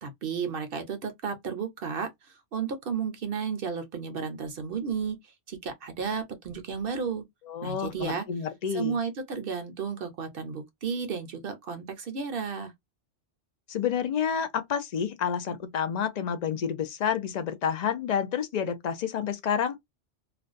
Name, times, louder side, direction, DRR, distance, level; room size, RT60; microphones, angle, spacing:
voice 1, 0.0-7.2 7.6-8.2 8.7-12.7, right 6 dB, 60° right, 0.7 m, -33 dB
voice 2, 7.5-9.0 13.7-19.8, left 8 dB, 65° left, 0.4 m, -29 dB
2.4 x 2.2 x 2.4 m
omnidirectional pair, 1.2 m